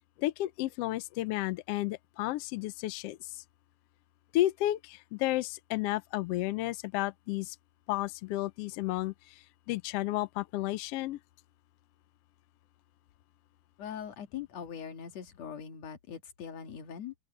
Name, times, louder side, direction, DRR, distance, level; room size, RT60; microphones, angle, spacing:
voice 1, 0.2-3.4 4.3-7.6 7.9-9.3 9.7-11.2, left 16 dB, 85° left, 1.3 m, -32 dB
voice 2, 13.8-17.1, left 8 dB, 60° left, 2.9 m, -41 dB
open air
omnidirectional pair, 3.5 m